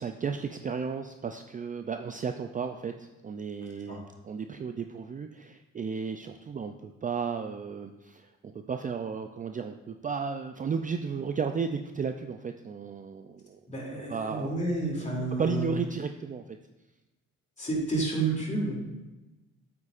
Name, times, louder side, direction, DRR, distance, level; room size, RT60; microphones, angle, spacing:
voice 1, 0.0-13.6 14.1-14.6 15.0-15.1 15.4-16.4, right 6 dB, 25° right, 6 dB, 0.4 m, -34 dB
voice 2, 13.7-15.7 17.6-18.8, right 2 dB, 25° left, -2 dB, 2.8 m, -30 dB
8.6 x 8.3 x 2.5 m, 1.1 s
cardioid pair, 90°, 30 cm